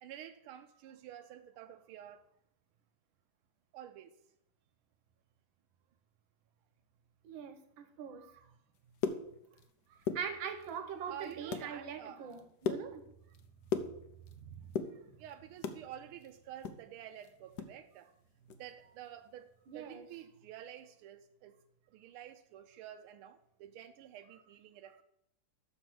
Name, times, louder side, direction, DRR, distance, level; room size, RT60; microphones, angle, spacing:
voice 1, 0.0-2.3 3.7-4.1 11.1-12.3 15.2-18.1 18.6-21.5 21.9-25.0, right 11 dB, 90° right, 1.5 m, -50 dB
voice 2, 7.2-8.5 10.2-13.0 14.5-14.7 19.7-20.1, right 7 dB, 70° right, 1.7 m, -42 dB
sound 1, 8.8-9.7 10.0-10.8 11.2-11.7 12.1-14.4 14.6-15.8 16.2-17.7 18.0-18.1 18.5-18.7 19.1-19.3, left 6 dB, 60° left, 1.3 m, -38 dB
7.0 x 6.4 x 6.1 m
omnidirectional pair, 2.3 m